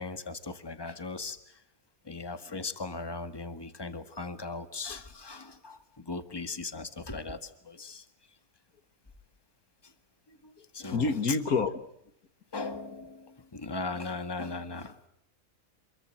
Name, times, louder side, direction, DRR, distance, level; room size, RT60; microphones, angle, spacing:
voice 1, 0.0-1.6 2.1-8.0 9.8-9.9 10.7-11.1 12.5-15.1, left 3 dB, 15° left, 9 dB, 1.8 m, -38 dB
voice 2, 10.3-11.7, left 4 dB, 80° left, 10 dB, 2.2 m, -29 dB
27.5 x 22.5 x 7.7 m, 0.77 s
omnidirectional pair, 1.5 m